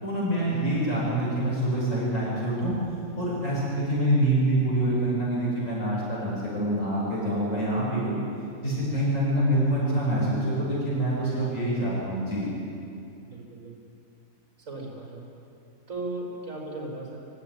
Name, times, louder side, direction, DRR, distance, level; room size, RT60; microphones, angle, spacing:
voice 1, 0.0-2.7 3.2-8.2 8.6-12.4, right 1 dB, 55° left, -7 dB, 7.1 m, -26 dB
voice 2, 13.2-13.7 14.7-15.3 15.9-17.3, right 2 dB, 60° right, -2 dB, 6.0 m, -36 dB
24.5 x 15.5 x 9.7 m, 2.6 s
omnidirectional pair, 1.6 m